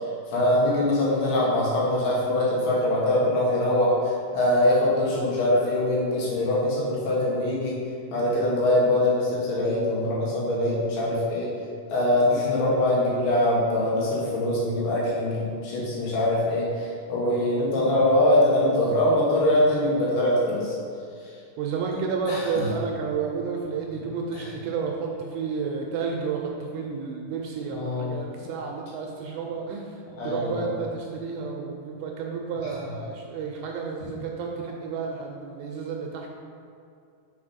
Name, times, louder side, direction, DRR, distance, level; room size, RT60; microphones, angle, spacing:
voice 1, 0.3-3.9 4.3-7.8 8.1-11.5 11.9-20.8 22.3-22.7 24.3-24.5 27.7-28.1 30.2-30.7, left 1 dB, 80° left, -6 dB, 3.6 m, -23 dB
voice 2, 21.6-36.3, right 5 dB, 80° right, 1 dB, 2.2 m, -31 dB
7.2 x 4.2 x 5.1 m, 2.4 s
omnidirectional pair, 4.6 m